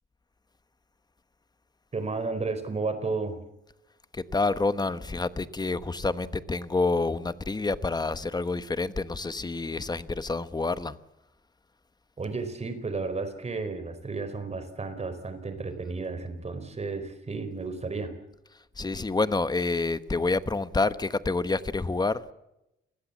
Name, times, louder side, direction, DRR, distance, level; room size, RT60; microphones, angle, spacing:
voice 1, 1.9-3.4 12.2-18.1, right 4 dB, 30° right, 4.6 m, -32 dB
voice 2, 4.1-10.9 18.8-22.2, left 3 dB, 20° left, 1.1 m, -28 dB
28.5 x 20.5 x 7.3 m
cardioid pair, 125°, 21 cm